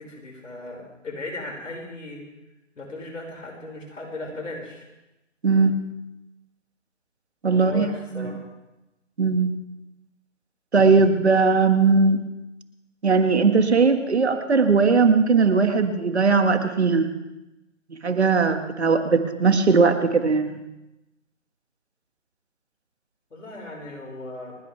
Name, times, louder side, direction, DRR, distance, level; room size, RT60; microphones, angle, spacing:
voice 1, 0.0-2.2 2.8-4.8 7.5-8.4 23.3-24.5, left 2 dB, 75° left, 0 dB, 5.7 m, -37 dB
voice 2, 5.4-5.8 7.4-7.9 8.1-8.4 9.2-9.5 10.7-12.2 13.0-17.1 18.0-20.6, right 4 dB, 60° right, 7 dB, 1.9 m, -19 dB
29.5 x 11.5 x 3.5 m, 0.96 s
hypercardioid pair, 175°, 38 cm